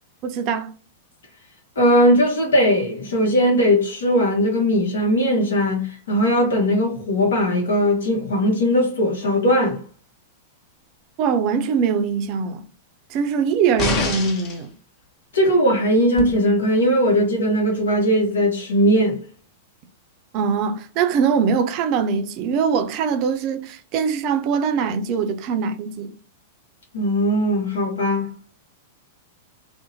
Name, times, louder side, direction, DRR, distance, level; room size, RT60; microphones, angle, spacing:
voice 1, 0.2-0.7 11.2-12.6 13.1-14.7 20.3-26.1, right 6 dB, 45° right, 0.4 m, -22 dB
voice 2, 1.8-9.8 15.3-19.2 26.9-28.3, equal, 75° left, 0.8 m, -19 dB
sound 1, 13.8-14.6 16.2-16.3, left 4 dB, 35° left, 0.7 m, -25 dB
2.6 x 2.0 x 2.7 m
hypercardioid pair, 105°, 0 cm